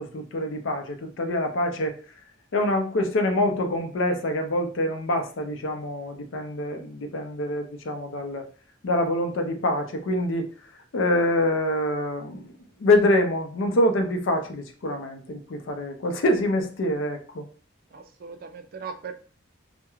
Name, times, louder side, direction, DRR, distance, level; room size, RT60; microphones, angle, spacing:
voice 1, 0.0-2.0 2.5-8.4 8.8-12.5 12.8-17.4, left 1 dB, 75° left, 5 dB, 0.5 m, -25 dB
voice 2, 17.9-19.1, right 5 dB, 50° right, 6 dB, 0.3 m, -38 dB
2.3 x 2.1 x 3.0 m, 0.39 s
head